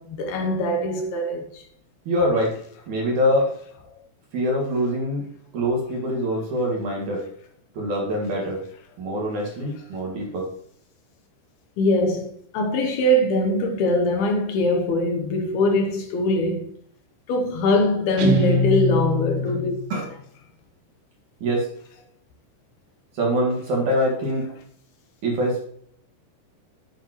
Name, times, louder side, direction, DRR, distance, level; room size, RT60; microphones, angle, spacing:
voice 1, 0.0-1.6 11.8-16.7 17.3-19.7, left 1 dB, 75° left, 2.6 m, -22 dB
voice 2, 2.1-2.5 2.9-3.5 4.3-5.3 5.5-7.2 7.7-8.6 9.0-10.5 19.4-19.5 19.9-20.1 21.4-21.7 23.1-24.5 25.2-25.7, equal, 55° right, 2.7 m, -24 dB
Guitar, 18.2-19.9, left 2 dB, 75° right, 3.3 m, -23 dB
10.0 x 8.5 x 3.0 m
omnidirectional pair, 5.0 m